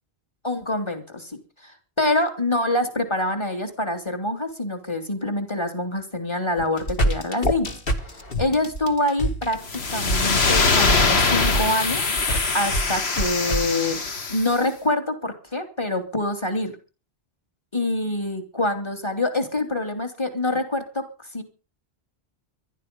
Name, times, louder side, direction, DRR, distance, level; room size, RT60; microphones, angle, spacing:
voice 1, 0.4-7.7 8.1-12.1 12.5-14.0 14.3-16.8 17.7-21.4, left 1 dB, 25° left, 5 dB, 2.8 m, -26 dB
sound 1, 6.6-13.6, right 1 dB, 60° left, 2.1 m, -26 dB
sound 2, 9.6-14.6, left 4 dB, 75° left, 1.8 m, -23 dB
19.5 x 12.5 x 5.3 m, 0.35 s
omnidirectional pair, 1.1 m